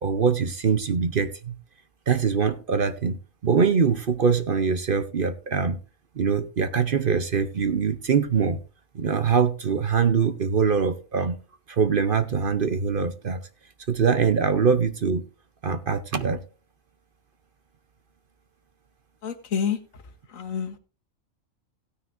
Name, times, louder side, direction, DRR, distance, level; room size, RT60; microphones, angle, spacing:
voice 1, 0.0-1.6 2.1-5.8 6.2-8.6 8.9-11.4 11.7-13.5 13.9-15.2 15.6-16.4, right 6 dB, 50° right, 0.8 m, -23 dB
voice 2, 19.2-19.8 20.3-20.8, left 7 dB, 80° left, 1.6 m, -28 dB
17.0 x 9.4 x 2.5 m
omnidirectional pair, 1.4 m